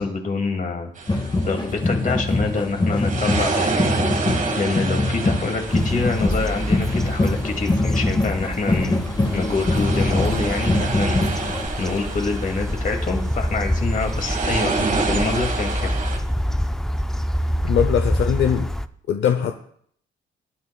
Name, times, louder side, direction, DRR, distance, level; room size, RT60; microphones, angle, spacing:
voice 1, 0.0-3.8 4.6-15.9, left 4 dB, 40° left, 3 dB, 2.4 m, -26 dB
sound 1, 1.0-16.2, right 4 dB, 40° right, 1.7 m, -29 dB
sound 2, 1.1-11.7, left 2 dB, 25° left, 1.7 m, -23 dB
sound 3, 5.7-18.9, equal, ahead, 0.5 m, -27 dB
voice 2, 17.6-18.7 19.1-19.5, left 9 dB, 70° left, 7 dB, 0.8 m, -21 dB
20.0 x 9.6 x 2.3 m, 0.65 s
cardioid pair, 90°, 20 cm